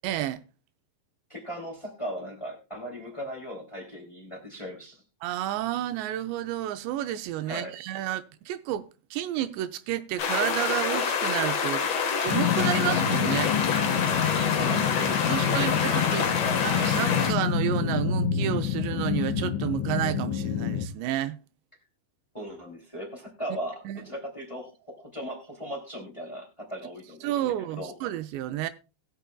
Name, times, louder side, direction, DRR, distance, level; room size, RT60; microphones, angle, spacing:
voice 1, 0.0-0.4 5.2-11.8 12.2-13.5 15.3-16.2 16.6-21.4 23.9-24.1 27.2-28.7, right 13 dB, 80° right, 2.8 m, -30 dB
voice 2, 1.3-5.0 7.5-7.7 14.5-16.1 16.4-16.7 22.3-27.3 27.7-27.9, equal, 10° left, 1.4 m, -38 dB
sound 1, 10.2-17.3, left 6 dB, 70° left, 1.5 m, -27 dB
sound 2, 12.3-20.9, left 8 dB, 85° left, 3.2 m, -27 dB
20.5 x 6.9 x 2.3 m
omnidirectional pair, 5.2 m